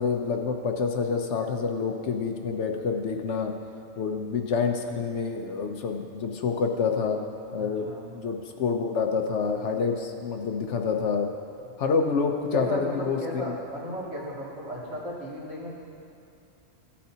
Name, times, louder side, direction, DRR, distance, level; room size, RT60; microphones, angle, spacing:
voice 1, 0.0-3.5 4.0-7.2 7.5-7.9 8.1-11.3 11.8-13.2, left 5 dB, 70° left, 4 dB, 1.0 m, -27 dB
voice 2, 7.5-8.1 12.5-15.7, left 1 dB, 65° right, -7 dB, 2.6 m, -35 dB
15.5 x 8.6 x 2.8 m, 2.7 s
omnidirectional pair, 1.3 m